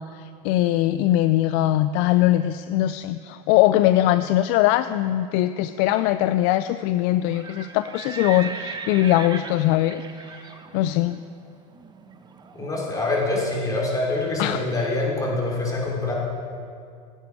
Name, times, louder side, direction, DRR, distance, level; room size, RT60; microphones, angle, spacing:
voice 1, 0.1-11.2 14.4-14.7, left 14 dB, 50° left, 12 dB, 0.4 m, -21 dB
Livestock farm animals working animals, 7.2-13.0, right 5 dB, 20° right, 0.9 m, -38 dB
voice 2, 12.5-16.1, left 2 dB, 15° left, -3 dB, 3.5 m, -25 dB
16.5 x 8.3 x 4.7 m, 2.3 s
hypercardioid pair, 105°, 20 cm